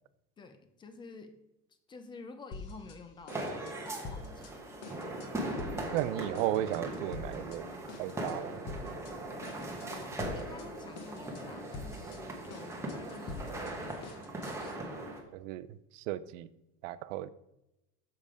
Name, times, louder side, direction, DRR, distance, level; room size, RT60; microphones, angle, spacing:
voice 1, 0.4-1.4 1.9-4.5 9.8-15.0, left 4 dB, 15° left, 8 dB, 0.4 m, -50 dB
sound 1, 2.5-3.0 3.3-4.5 4.8-5.3 5.6-6.0 6.3-7.6 7.9-8.4 8.7-9.1 9.4-10.7 11.0-11.4 11.7-14.8, left 4 dB, 40° left, 1.1 m, -45 dB
sound 2, 3.3-15.2, right 1 dB, 5° right, 1.0 m, -39 dB
voice 2, 5.9-7.7 8.0-8.6 15.3-15.7 15.9-16.5 16.8-17.3, right 13 dB, 85° right, 15 dB, 0.6 m, -34 dB
6.7 x 5.4 x 4.9 m, 0.91 s
cardioid pair, 160°, 37 cm